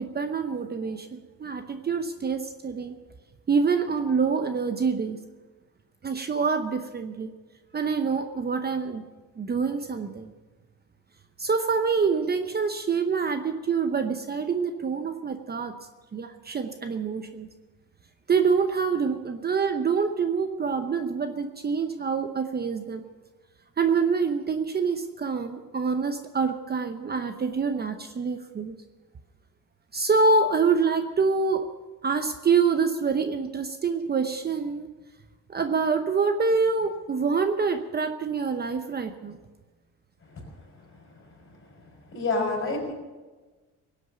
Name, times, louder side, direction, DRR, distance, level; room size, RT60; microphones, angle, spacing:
voice 1, 0.0-3.0 3.5-5.2 6.0-7.3 7.7-9.0 9.4-10.3 11.4-15.7 16.1-17.5 18.3-23.0 23.8-28.8 29.9-31.7 32.0-34.9 35.5-39.4, right 5 dB, 30° right, 8 dB, 0.8 m, -26 dB
voice 2, 42.1-42.9, left 3 dB, 40° left, 1 dB, 5.5 m, -27 dB
17.5 x 8.4 x 6.9 m, 1.3 s
cardioid pair, 100°, 34 cm